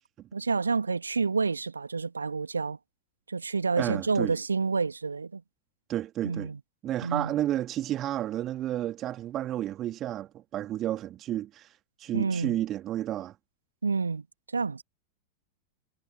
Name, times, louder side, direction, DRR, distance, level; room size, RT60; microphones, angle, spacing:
voice 1, 0.3-2.8 3.3-5.4 6.2-6.6 7.0-7.3 12.1-12.6 13.8-14.2 14.5-14.8, right 4 dB, 75° right, 2.6 m, -29 dB
voice 2, 3.8-4.3 5.9-6.5 6.8-11.7 12.0-13.3, right 12 dB, 30° right, 3.1 m, -31 dB
figure-of-eight pair, 90°, 0 cm